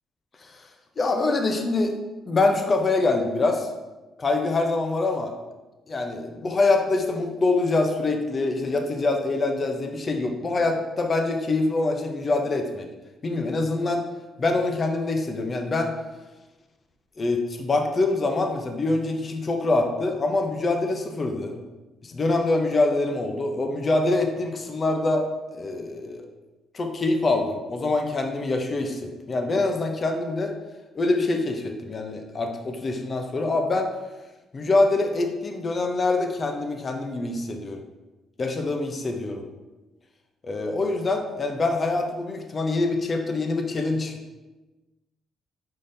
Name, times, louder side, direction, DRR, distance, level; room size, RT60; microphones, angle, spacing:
voice 1, 1.0-1.9 2.3-3.7 4.2-5.3 5.9-12.9 13.2-14.1 14.4-15.9 17.2-21.6 22.0-25.3 25.5-26.3 26.7-30.5 30.9-33.9 34.5-37.8 38.4-39.4 40.4-44.1, left 2 dB, 35° left, 3 dB, 0.6 m, -25 dB
5.1 x 3.7 x 2.6 m, 1.1 s
cardioid pair, 90°, 0 cm